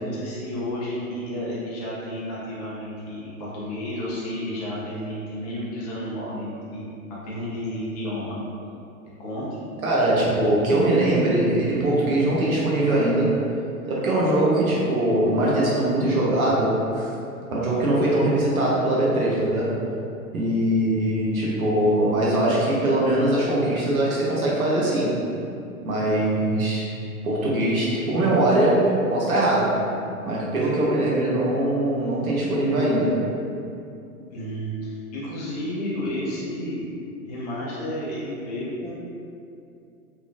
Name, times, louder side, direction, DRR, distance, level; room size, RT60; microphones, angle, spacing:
voice 1, 0.0-6.8 7.2-8.4 9.2-9.7 34.3-36.8 37.3-38.9, equal, 30° left, -7 dB, 0.5 m, -31 dB
voice 2, 9.8-13.3 13.9-17.0 17.5-19.8 20.3-25.1 25.8-26.8 27.2-28.8 29.1-29.7 30.2-33.1, right 1 dB, 75° right, -6 dB, 0.9 m, -21 dB
2.9 x 2.3 x 2.4 m, 2.6 s
figure-of-eight pair, 100°, 43 cm